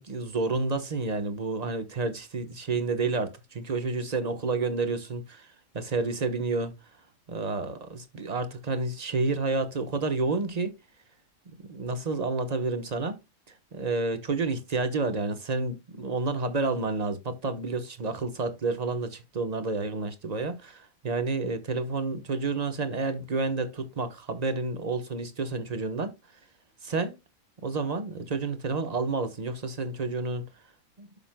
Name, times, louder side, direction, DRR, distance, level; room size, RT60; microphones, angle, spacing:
voice 1, 0.0-6.7 7.3-10.8 11.6-13.2 13.7-26.2 26.8-27.2 27.6-30.5 31.0-31.1, right 3 dB, 35° right, 1.1 m, -30 dB
12.5 x 5.8 x 2.2 m
omnidirectional pair, 1.3 m